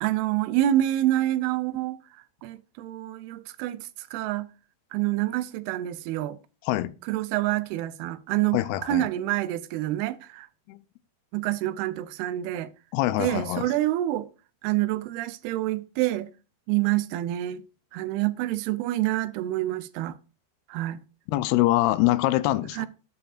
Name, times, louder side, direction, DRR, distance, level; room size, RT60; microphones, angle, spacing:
voice 1, 0.0-2.0 2.4-4.5 4.9-6.4 7.1-10.5 11.3-12.7 13.2-14.3 14.6-16.3 16.7-17.6 17.9-20.2 20.7-21.0 22.7-22.9, right 14 dB, 85° right, 2.5 m, -27 dB
voice 2, 8.5-9.1 10.7-10.8 12.9-13.7 21.3-22.9, left 16 dB, 85° left, 2.5 m, -24 dB
10.0 x 7.4 x 2.4 m
omnidirectional pair, 4.5 m